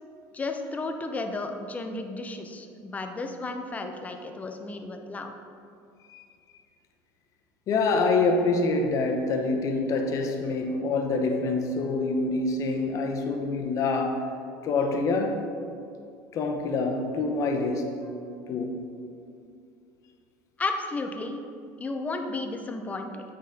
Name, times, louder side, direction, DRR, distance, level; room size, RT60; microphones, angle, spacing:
voice 1, 0.3-5.3 20.6-21.4 21.8-23.2, left 3 dB, 20° left, 5 dB, 0.7 m, -33 dB
voice 2, 7.7-14.3 14.6-15.5 16.3-17.9 18.5-18.8, left 3 dB, 45° left, 3 dB, 0.9 m, -26 dB
9.2 x 4.0 x 3.9 m, 2.5 s
supercardioid pair, 105°, 7 cm